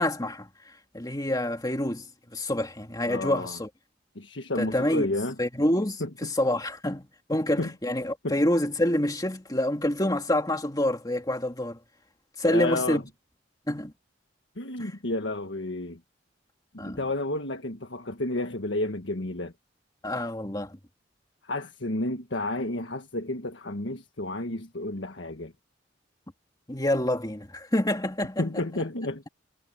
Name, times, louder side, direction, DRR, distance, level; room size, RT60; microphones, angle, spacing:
voice 1, 0.0-3.7 4.6-5.1 5.4-11.8 12.4-13.0 13.7-13.9 14.8-14.9 16.8-17.1 20.0-20.8 26.7-28.6, left 1 dB, 20° left, 2.3 m, -27 dB
voice 2, 3.1-3.6 4.1-5.3 6.0-6.1 7.6-7.7 8.2-8.4 12.4-13.0 14.6-16.0 16.7-19.5 21.4-25.5 28.4-29.3, left 2 dB, 80° left, 1.5 m, -31 dB
head